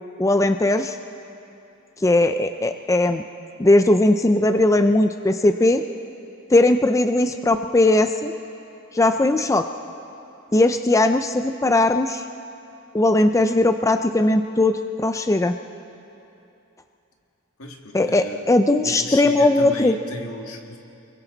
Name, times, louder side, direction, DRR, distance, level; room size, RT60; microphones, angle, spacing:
voice 1, 0.2-0.9 2.0-3.2 3.6-5.8 6.5-8.3 8.9-9.7 10.5-12.2 12.9-15.5 17.9-20.0, left 2 dB, 15° left, 8 dB, 0.4 m, -18 dB
voice 2, 17.6-18.5 18.8-20.8, left 1 dB, 75° left, 2 dB, 2.0 m, -35 dB
30.0 x 22.5 x 3.9 m, 2.8 s
head